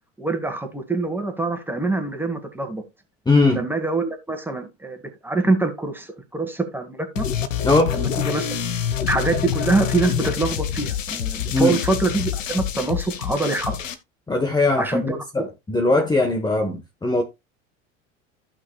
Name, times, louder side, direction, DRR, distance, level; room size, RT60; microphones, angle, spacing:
voice 1, 0.2-2.8 3.5-7.2 7.9-8.5 9.1-13.8 14.8-15.5, right 3 dB, 5° right, 2.2 m, -25 dB
voice 2, 3.3-3.7 7.6-8.0 11.5-11.8 14.3-17.2, left 2 dB, 10° left, 1.3 m, -20 dB
sound 1, 7.2-13.9, left 9 dB, 85° left, 1.1 m, -26 dB
15.0 x 6.0 x 2.3 m
hypercardioid pair, 80°, 38 cm